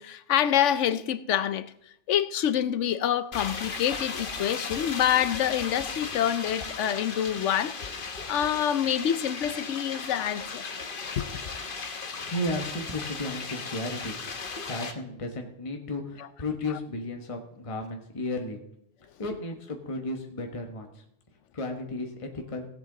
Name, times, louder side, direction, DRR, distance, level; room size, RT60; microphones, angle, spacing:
voice 1, 0.0-1.7 2.1-10.6 11.2-11.4, left 10 dB, 80° left, 1.0 m, -27 dB
sound 1, 3.3-14.9, left 4 dB, 50° left, 1.1 m, -36 dB
voice 2, 12.2-14.1 14.6-18.6 19.2-21.0 21.5-22.7, left 1 dB, 30° left, 1.2 m, -34 dB
16.0 x 8.3 x 3.9 m
omnidirectional pair, 1.2 m